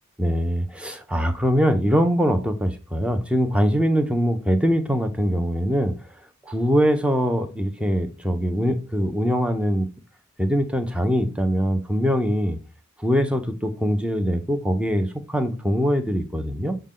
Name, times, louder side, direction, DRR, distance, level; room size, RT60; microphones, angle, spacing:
voice 1, 0.2-5.9 6.4-9.9 10.4-12.6 13.0-16.8, equal, 5° right, 7 dB, 0.5 m, -22 dB
6.2 x 2.2 x 3.6 m, 0.33 s
head